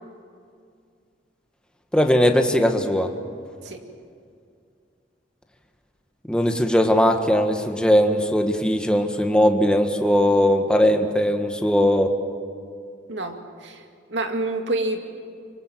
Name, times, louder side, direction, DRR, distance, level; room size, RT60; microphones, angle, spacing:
voice 1, 1.9-3.1 6.3-12.1, equal, 5° left, 4 dB, 1.6 m, -19 dB
voice 2, 13.1-13.8 14.1-15.0, right 2 dB, 80° right, 4 dB, 2.4 m, -27 dB
25.0 x 24.0 x 7.6 m, 2.3 s
head